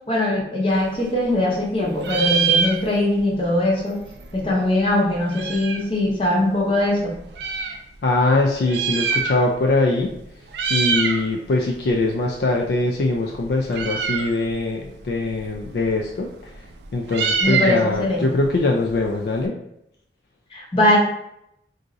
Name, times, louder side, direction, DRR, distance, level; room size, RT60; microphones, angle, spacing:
voice 1, 0.0-4.0 4.3-7.1 17.4-18.3 20.5-21.0, left 1 dB, 30° left, -2 dB, 0.7 m, -21 dB
Meow, 0.7-1.7 2.0-3.3 3.5-3.6 3.8-5.9 6.6-7.8 8.5-9.7 10.0-10.2 10.5-11.3 11.6-19.5, right 5 dB, 70° right, 0.4 m, -26 dB
voice 2, 8.0-10.1 10.7-16.3 16.9-19.5, left 2 dB, 60° left, 0 dB, 0.3 m, -22 dB
2.6 x 2.4 x 3.9 m, 0.78 s
head